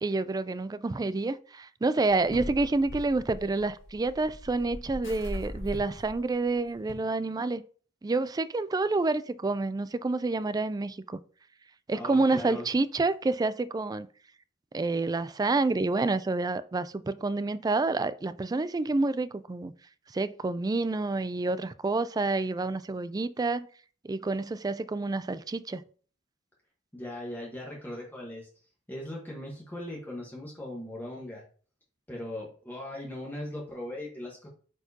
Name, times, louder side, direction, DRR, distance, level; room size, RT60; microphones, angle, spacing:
voice 1, 0.0-7.6 8.0-11.2 11.9-14.1 14.7-19.7 20.1-23.7 24.0-25.8, right 3 dB, 20° right, 0.3 m, -28 dB
sound 1, 2.0-6.9, left 1 dB, 90° left, 1.8 m, -40 dB
voice 2, 11.9-12.6 26.9-28.5 28.9-31.4 32.1-34.5, left 1 dB, 10° left, 1.3 m, -39 dB
8.8 x 4.6 x 2.8 m
head